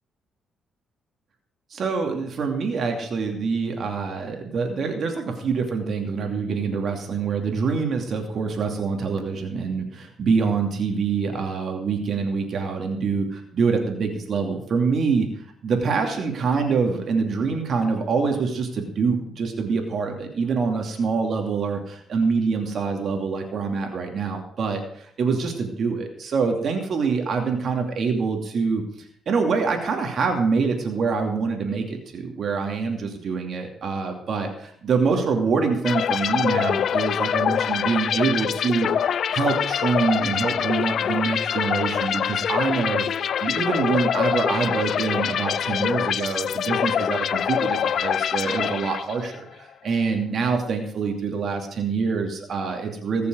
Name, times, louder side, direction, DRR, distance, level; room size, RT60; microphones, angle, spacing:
voice 1, 1.7-28.8 29.3-38.9 39.3-43.0 43.4-53.3, right 5 dB, 55° right, 3 dB, 2.7 m, -25 dB
sound 1, 35.8-49.4, left 8 dB, 60° left, 0.5 m, -25 dB
20.0 x 6.9 x 6.3 m, 0.62 s
cardioid pair, 90°, 0 cm